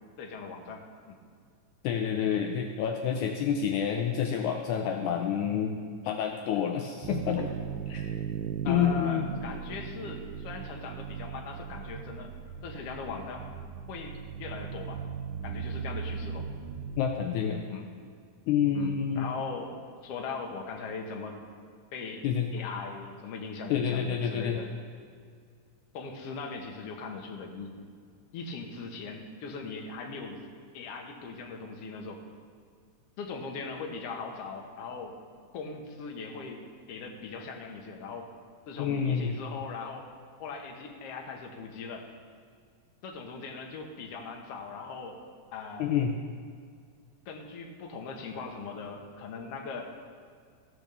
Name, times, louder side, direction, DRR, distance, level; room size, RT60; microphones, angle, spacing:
voice 1, 0.2-1.2 8.6-12.3 12.6-13.5 13.9-15.0 15.4-16.5 17.7-17.9 18.7-21.4 21.9-22.3 22.5-24.7 25.9-27.8 28.3-30.4 30.7-32.2 33.2-35.2 35.5-38.3 38.7-40.1 40.4-42.1 43.0-45.2 45.5-45.9 47.3-49.9, left 4 dB, 60° left, 2 dB, 1.8 m, -40 dB
voice 2, 1.8-5.8 6.0-7.5 7.9-8.2 8.7-9.3 17.0-17.6 18.5-19.3 22.2-22.5 23.7-24.6 38.8-39.3 45.8-46.1, left 8 dB, 75° left, 3 dB, 2.0 m, -28 dB
sound 1, 7.0-17.0, right 7 dB, 80° right, 2.0 m, -38 dB
15.5 x 5.3 x 6.6 m, 2.1 s
omnidirectional pair, 3.8 m